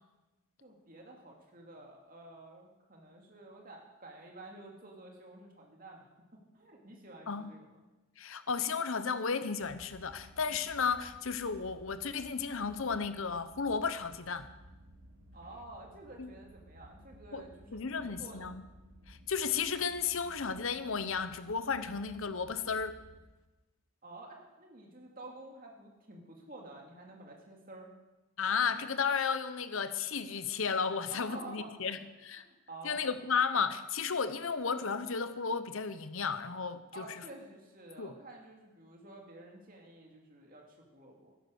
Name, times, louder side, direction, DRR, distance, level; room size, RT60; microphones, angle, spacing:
voice 1, 0.6-6.1 6.5-7.8 15.3-18.6 24.0-27.9 30.5-30.6 31.1-31.9 32.7-33.0 36.9-41.3, right 2 dB, 40° right, 0 dB, 2.6 m, -50 dB
voice 2, 8.2-14.5 16.2-16.3 17.3-18.6 19.1-22.9 28.4-32.4 32.8-37.2 38.0-38.1, left 5 dB, 70° left, 12 dB, 0.9 m, -33 dB
sound 1, 9.6-23.2, equal, 85° right, 2.4 m, -56 dB
13.5 x 10.5 x 6.4 m, 1.1 s
head